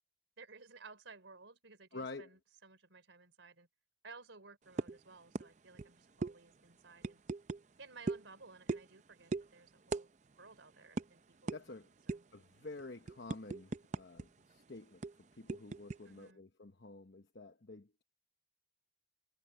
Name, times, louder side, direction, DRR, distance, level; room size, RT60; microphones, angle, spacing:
voice 1, 0.4-3.7 4.0-7.2 7.8-10.1 10.4-12.3 16.0-16.4, right 4 dB, 85° right, 3.7 m, -57 dB
voice 2, 1.9-2.3 11.5-11.9 12.3-18.0, left 3 dB, 60° left, 1.0 m, -49 dB
sound 1, 4.8-5.0 5.4-5.5 5.7-5.9 6.2-6.3 7.0-7.6 8.1-8.3 8.7-9.0 9.3-9.5 9.9-10.1 10.3-10.5 11.0-11.1 11.5-11.6 12.1-12.4 12.8-14.2 14.5-14.6 15.0-16.0, right 3 dB, 40° right, 0.5 m, -38 dB
head